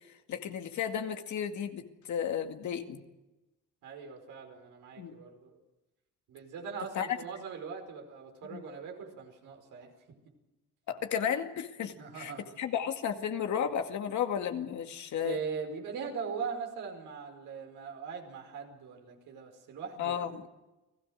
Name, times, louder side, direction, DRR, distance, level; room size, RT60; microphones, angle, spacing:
voice 1, 0.3-3.0 5.0-5.2 7.0-7.2 8.5-8.6 10.9-12.3 12.6-15.4 20.0-20.4, left 8 dB, 70° left, 6 dB, 2.2 m, -33 dB
voice 2, 3.8-5.6 6.3-9.9 12.0-12.6 15.2-20.2, right 6 dB, 90° right, 2 dB, 5.2 m, -40 dB
29.5 x 17.5 x 6.5 m, 1.0 s
cardioid pair, 90°, 30 cm